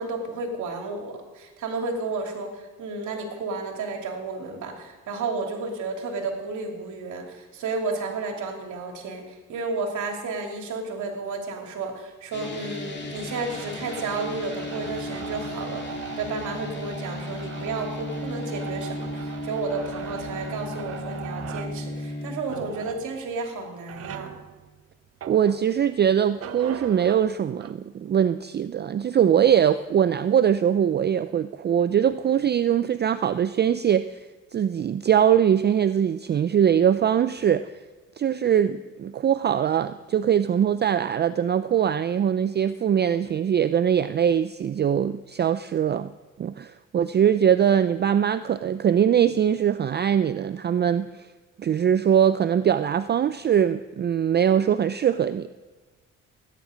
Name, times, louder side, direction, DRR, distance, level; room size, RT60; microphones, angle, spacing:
voice 1, 0.0-24.3, right 3 dB, 75° right, 2 dB, 2.9 m, -32 dB
sound 1, 12.3-22.4, left 2 dB, 35° left, 2.3 m, -35 dB
sound 2, 13.1-26.0 26.4-27.7, right 9 dB, 50° right, 0.8 m, -40 dB
voice 2, 25.3-34.3 34.5-37.7 38.2-46.1 46.4-51.1 51.6-55.5, right 9 dB, 35° right, 13 dB, 0.4 m, -22 dB
18.0 x 9.7 x 5.1 m, 1.2 s
cardioid pair, 90°, 30 cm